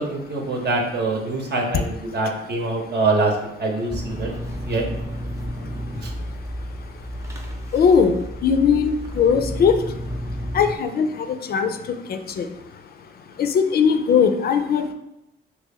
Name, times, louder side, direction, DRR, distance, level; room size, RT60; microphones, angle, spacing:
voice 1, 0.0-3.3 3.6-4.3 4.7-4.8 6.0-6.1, right 3 dB, 55° right, 1 dB, 0.9 m, -24 dB
sound 1, 3.9-10.8, equal, 15° right, 0.6 m, -31 dB
voice 2, 7.7-8.1 8.4-9.7 10.5-11.1 11.5-11.7 12.1-12.4 13.4-14.9, left 6 dB, 50° left, 7 dB, 0.4 m, -19 dB
3.0 x 2.9 x 3.7 m, 0.89 s
cardioid pair, 90°, 20 cm